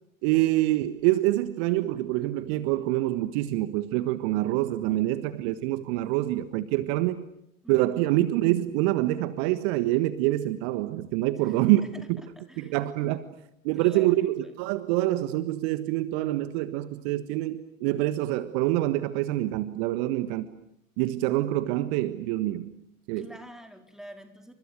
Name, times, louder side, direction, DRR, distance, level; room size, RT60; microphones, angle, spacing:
voice 1, 0.2-7.2 7.7-11.8 12.1-12.2 12.6-13.2 13.6-20.5 21.0-22.7 23.1-23.3, right 16 dB, 50° right, 13 dB, 1.6 m, -26 dB
voice 2, 11.4-12.8 13.2-13.3 13.7-14.5 23.2-24.5, equal, ahead, 5 dB, 4.4 m, -49 dB
30.0 x 25.5 x 6.7 m, 0.79 s
figure-of-eight pair, 80°, 40 cm